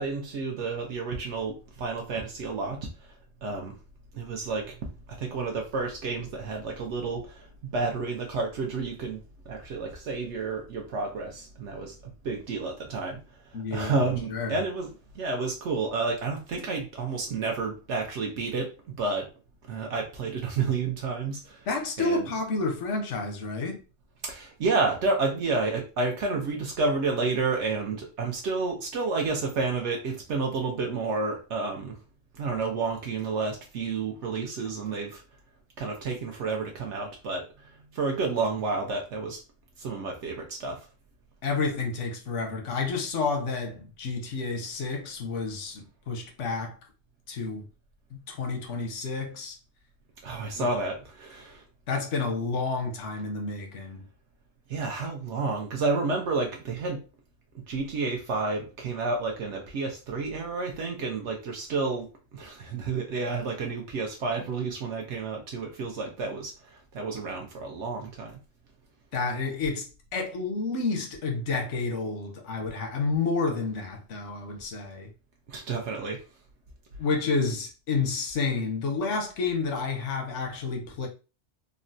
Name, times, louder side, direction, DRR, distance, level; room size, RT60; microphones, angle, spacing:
voice 1, 0.0-2.9 3.4-3.8 4.1-9.2 9.5-12.0 12.2-13.2 13.7-14.9 15.1-18.7 19.0-19.3 19.7-21.7 22.0-22.3 24.2-32.0 32.3-35.2 35.8-39.4 39.8-40.8 50.2-51.6 54.7-57.0 57.7-62.1 62.3-68.4 75.5-76.2, right 3 dB, 75° right, 0.9 m, -30 dB
voice 2, 13.5-14.0 14.3-14.6 21.7-23.8 41.4-46.8 47.3-47.7 48.1-49.6 50.5-50.7 51.9-54.0 69.1-75.1 77.0-81.1, left 4 dB, 90° left, 1.1 m, -30 dB
3.7 x 2.1 x 2.5 m
omnidirectional pair, 1.2 m